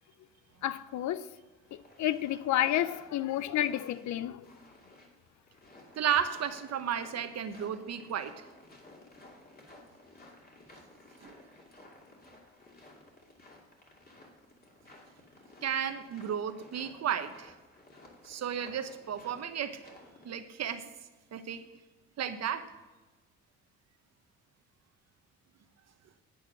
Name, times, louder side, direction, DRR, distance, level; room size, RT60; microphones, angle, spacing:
voice 1, 0.6-1.3 2.0-4.5, left 12 dB, 70° left, 0.6 m, -30 dB
sound 1, 1.6-20.4, left 2 dB, 30° left, 2.5 m, -56 dB
voice 2, 6.0-8.5 11.2-11.4 15.6-17.5 18.2-19.8 20.2-20.9 21.3-21.6 22.2-22.7, right 8 dB, 60° right, 1.0 m, -33 dB
9.0 x 8.6 x 6.0 m
cardioid pair, 90°, 30 cm